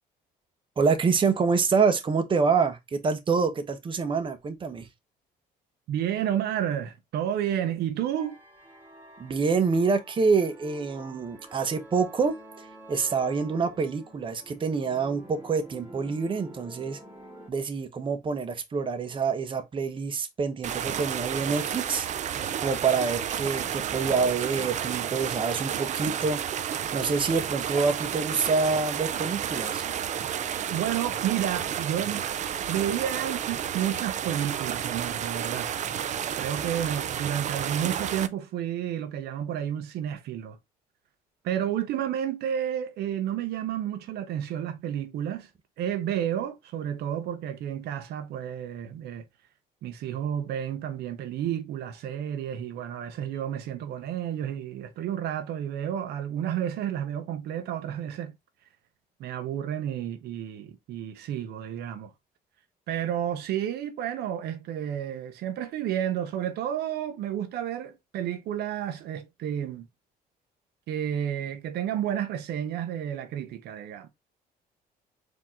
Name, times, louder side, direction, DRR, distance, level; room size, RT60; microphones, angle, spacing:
voice 1, 0.8-4.9 9.2-17.0 17.5-29.8, right 5 dB, 30° right, 0.9 m, -27 dB
voice 2, 5.9-8.4 30.7-32.2 32.7-35.7 36.4-40.6 41.4-45.5 45.8-49.3 49.8-58.4 59.2-62.1 62.9-69.8 70.9-74.1, right 10 dB, 75° right, 0.8 m, -31 dB
sound 1, 8.1-17.5, right 1 dB, 10° right, 1.6 m, -48 dB
sound 2, 20.6-38.3, right 9 dB, 45° right, 0.5 m, -31 dB
4.7 x 2.8 x 3.6 m
cardioid pair, 110°, 17 cm